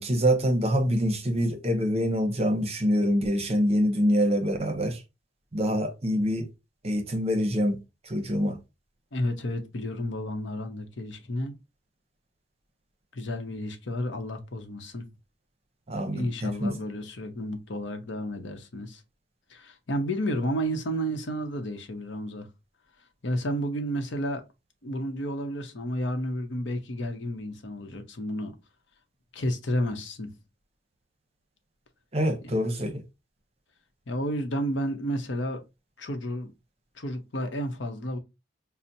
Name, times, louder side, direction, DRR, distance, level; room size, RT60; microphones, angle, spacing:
voice 1, 0.0-5.0 5.5-6.5 6.8-7.8 8.0-8.6 15.9-16.8 32.1-33.0, equal, 35° right, 0.7 m, -25 dB
voice 2, 9.1-11.5 13.1-15.1 16.1-19.0 19.5-22.5 23.2-24.4 24.8-28.6 29.3-30.3 34.1-35.6 36.0-36.5 36.9-38.2, equal, 75° left, 0.8 m, -31 dB
5.5 x 2.1 x 2.6 m
head